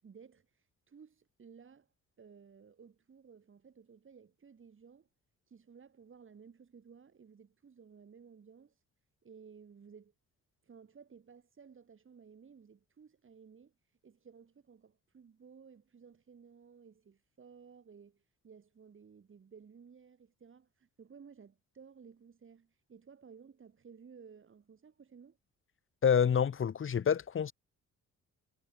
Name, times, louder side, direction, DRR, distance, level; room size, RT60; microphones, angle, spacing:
voice 1, 0.0-5.1 5.5-8.8 9.2-10.1 10.6-25.4, right 6 dB, 40° right, 6.6 m, -57 dB
voice 2, 26.0-27.5, left 7 dB, 45° left, 1.6 m, -27 dB
cardioid pair, 90°, 30 cm